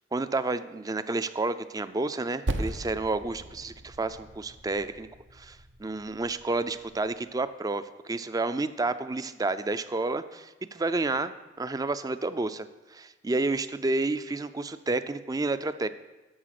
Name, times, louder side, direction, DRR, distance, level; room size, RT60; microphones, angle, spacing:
voice 1, 0.1-5.1 5.3-15.9, right 2 dB, 20° right, 12 dB, 0.4 m, -30 dB
Percussion, 2.5-7.3, right 1 dB, 85° right, 0.9 m, -38 dB
11.0 x 7.2 x 5.9 m, 1.2 s
head